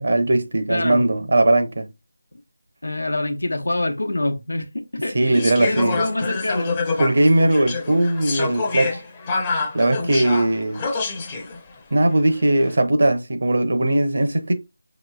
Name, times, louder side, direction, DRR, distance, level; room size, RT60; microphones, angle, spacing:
voice 1, 0.0-1.9 5.1-6.0 7.0-9.0 9.7-10.8 11.9-14.5, right 1 dB, 60° right, 0.7 m, -19 dB
voice 2, 0.7-1.2 2.8-7.0, left 2 dB, 85° left, 0.9 m, -26 dB
sound 1, 5.3-11.6 12.4-12.8, left 4 dB, 20° left, 0.6 m, -27 dB
6.0 x 2.9 x 2.3 m
figure-of-eight pair, 165°, 0 cm